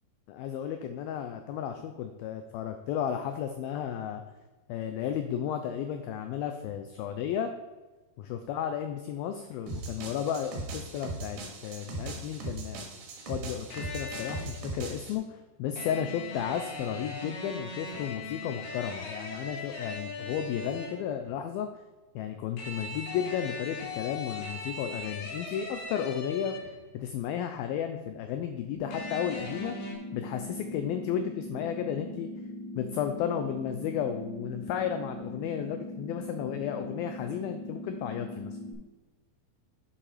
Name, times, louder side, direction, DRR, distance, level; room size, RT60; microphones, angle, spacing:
voice 1, 0.3-4.2 4.7-7.5 8.2-12.9 13.3-21.7 22.2-26.6 26.9-29.8 30.1-32.3 32.8-38.6, left 9 dB, 90° left, 7 dB, 2.1 m, -33 dB
sound 1, 9.7-15.1, right 2 dB, 80° right, 3.8 m, -39 dB
sound 2, 13.7-14.6 15.8-21.1 22.6-26.9 28.9-29.9, left 3 dB, 60° left, 3.2 m, -39 dB
sound 3, 28.7-38.7, left 1 dB, 35° left, 2.8 m, -40 dB
8.6 x 7.3 x 4.9 m, 1.2 s
omnidirectional pair, 4.9 m